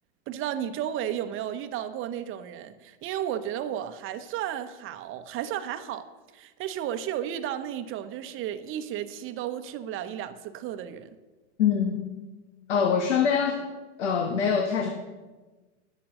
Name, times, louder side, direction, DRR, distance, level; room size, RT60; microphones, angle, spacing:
voice 1, 0.3-11.1, right 10 dB, 35° right, 10 dB, 0.8 m, -33 dB
voice 2, 11.6-12.0 12.7-13.6 14.0-14.9, left 7 dB, 80° left, 5 dB, 1.3 m, -24 dB
10.5 x 8.6 x 6.4 m, 1.2 s
hypercardioid pair, 110°, 35 cm